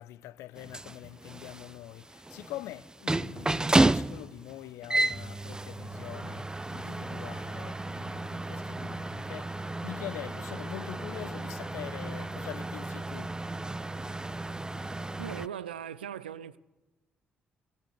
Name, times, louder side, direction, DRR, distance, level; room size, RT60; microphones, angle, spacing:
voice 1, 0.0-13.4, left 15 dB, 70° left, 0.5 m, -44 dB
sound 1, 0.6-15.5, right 2 dB, 15° right, 0.5 m, -32 dB
sound 2, 6.0-16.0, left 3 dB, 40° left, 4.1 m, -54 dB
voice 2, 15.2-16.6, right 9 dB, 85° right, 0.4 m, -39 dB
16.5 x 10.5 x 7.9 m
figure-of-eight pair, 45°, 5 cm